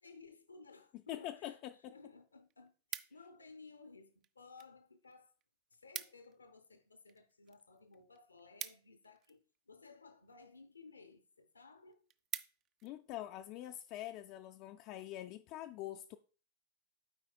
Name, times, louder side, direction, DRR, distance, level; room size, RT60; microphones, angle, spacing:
voice 1, 0.0-5.3 5.7-12.0, left 4 dB, 80° left, 0.6 m, -58 dB
voice 2, 1.1-1.7 12.8-16.2, left 13 dB, 40° left, 0.3 m, -45 dB
sound 1, 2.1-3.5 4.2-4.7 5.0-5.1 5.4-5.5 5.7-6.4 6.7-9.6 10.3-10.6 11.1-11.2 11.6-11.7 11.9-12.9 13.4-13.6, right 11 dB, 35° right, 0.4 m, -47 dB
12.5 x 4.7 x 2.2 m
figure-of-eight pair, 90°, 0 cm